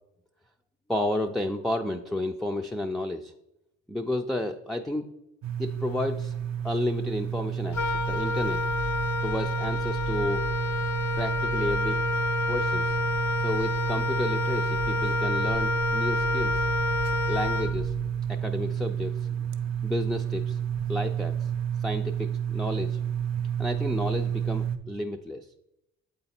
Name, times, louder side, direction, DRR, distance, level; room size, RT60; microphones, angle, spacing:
voice 1, 0.9-3.3 3.9-5.1 5.6-6.4 6.6-8.6 9.2-10.5 11.2-12.0 12.5-13.0 13.4-16.6 17.3-17.9 18.3-19.3 19.8-20.6 20.9-21.5 21.8-23.0 23.6-25.5, left 1 dB, ahead, 3 dB, 0.3 m, -31 dB
sound 1, 5.4-24.8, right 9 dB, 60° right, 0.6 m, -30 dB
Wind instrument woodwind instrument, 7.7-18.2, left 3 dB, 65° left, 0.7 m, -29 dB
7.9 x 3.9 x 4.3 m, 0.83 s
cardioid pair, 90°, 30 cm